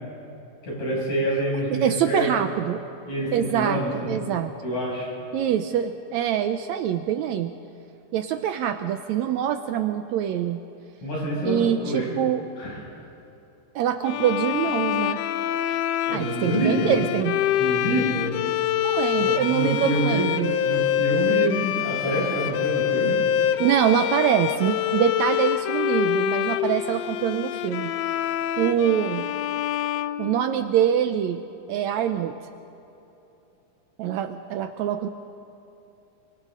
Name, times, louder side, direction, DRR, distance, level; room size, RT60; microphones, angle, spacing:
voice 1, 0.6-2.4 3.1-4.2 4.6-5.1 11.0-12.2 12.6-12.8 16.1-17.0 17.6-18.4 19.1-20.3 20.6-23.2, right 1 dB, 55° left, -5 dB, 7.9 m, -27 dB
voice 2, 1.7-2.8 3.3-4.5 5.3-7.5 8.1-10.6 11.4-12.4 13.8-15.2 16.1-17.4 18.8-20.5 23.6-27.9 28.6-29.3 30.2-31.4 31.7-32.4 34.0-35.1, right 10 dB, 80° right, 8 dB, 1.7 m, -24 dB
sound 1, 14.0-30.9, left 11 dB, 90° left, 1.4 m, -26 dB
28.5 x 24.5 x 3.8 m, 2.9 s
omnidirectional pair, 3.7 m